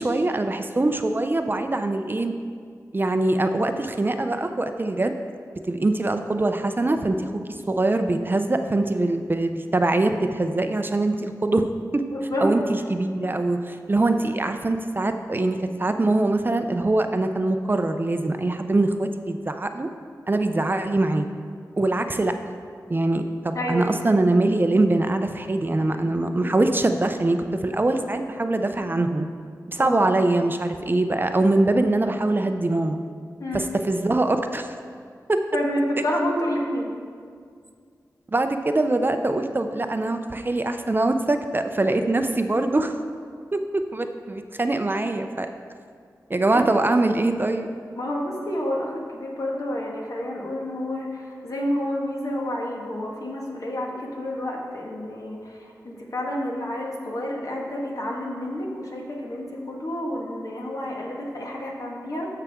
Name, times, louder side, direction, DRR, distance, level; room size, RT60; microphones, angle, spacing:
voice 1, 0.0-2.3 2.9-5.2 5.6-11.7 11.9-12.0 12.4-19.9 20.3-21.3 21.8-22.3 22.9-29.3 29.7-33.0 33.5-34.7 35.3-35.4 38.3-43.0 43.5-45.5 46.3-47.8, right 2 dB, 30° right, 7 dB, 0.5 m, -23 dB
voice 2, 12.1-12.6 23.5-23.9 25.8-26.5 29.8-30.0 33.4-33.6 35.5-36.9 42.3-42.4 46.5-46.7 48.0-62.3, left 1 dB, 60° left, -2 dB, 1.6 m, -29 dB
13.5 x 5.7 x 3.6 m, 2.1 s
wide cardioid pair, 70°, 7 cm